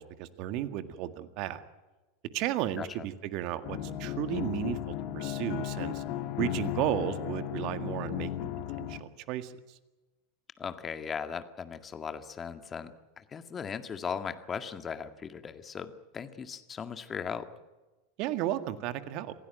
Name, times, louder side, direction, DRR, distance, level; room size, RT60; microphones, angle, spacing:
voice 1, 0.0-1.6 2.3-6.0 6.4-8.5 8.8-9.5 18.2-19.3, right 12 dB, 50° right, 11 dB, 1.8 m, -34 dB
sound 1, 3.6-9.0, left 13 dB, 50° left, 2.0 m, -35 dB
voice 2, 10.6-17.5, left 6 dB, 25° left, 9 dB, 1.9 m, -38 dB
27.0 x 16.5 x 9.2 m, 1.1 s
figure-of-eight pair, 85°, 0 cm